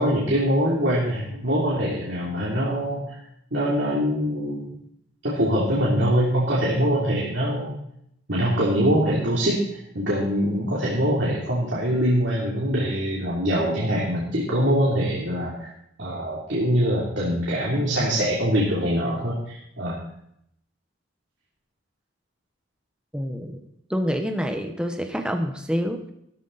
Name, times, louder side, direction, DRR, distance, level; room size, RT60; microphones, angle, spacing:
voice 1, 0.0-3.2 3.5-4.7 5.2-7.7 8.3-9.6 9.9-15.7 16.0-20.0, equal, 65° right, -5 dB, 3.3 m, -23 dB
voice 2, 23.1-23.6 23.9-26.1, equal, 5° right, 5 dB, 1.1 m, -27 dB
15.5 x 13.0 x 4.2 m, 0.73 s
head